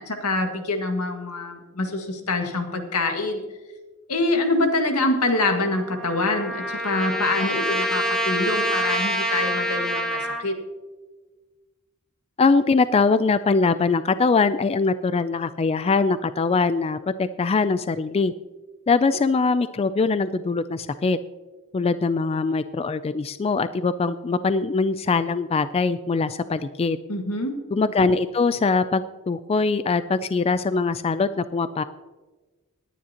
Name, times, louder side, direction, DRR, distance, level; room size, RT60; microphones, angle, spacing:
voice 1, 0.0-3.4 4.1-10.5 27.1-27.5, left 2 dB, 85° left, 4 dB, 1.8 m, -25 dB
Trumpet, 5.3-10.4, equal, 5° left, 1.3 m, -26 dB
voice 2, 12.4-18.3 18.9-21.2 21.7-27.0 27.7-31.8, left 4 dB, 25° left, 13 dB, 0.3 m, -22 dB
19.0 x 10.0 x 2.9 m, 1.2 s
head